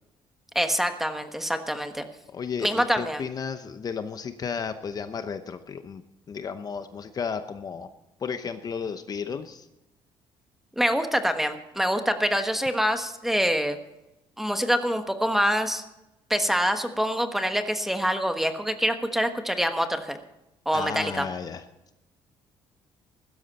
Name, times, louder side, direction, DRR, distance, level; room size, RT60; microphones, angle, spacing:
voice 1, 0.5-2.1 2.6-3.2 10.8-13.8 14.4-15.8 16.3-20.2 20.6-21.3, equal, 5° right, 7 dB, 1.3 m, -25 dB
voice 2, 2.3-6.0 6.3-7.9 8.2-9.7 20.7-21.6, left 6 dB, 35° left, 9 dB, 0.8 m, -33 dB
15.5 x 13.0 x 4.2 m, 0.95 s
cardioid pair, 120°, 10 cm